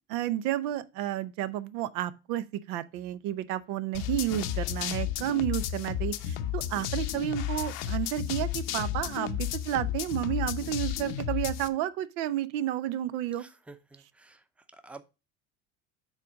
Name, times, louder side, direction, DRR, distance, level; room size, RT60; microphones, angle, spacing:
voice 1, 0.1-13.4, right 12 dB, 85° right, 0.7 m, -31 dB
sound 1, 3.9-11.7, left 11 dB, 80° left, 0.8 m, -32 dB
voice 2, 13.4-14.4 14.7-15.0, right 3 dB, 5° right, 0.6 m, -50 dB
7.3 x 4.0 x 5.1 m
supercardioid pair, 105°, 38 cm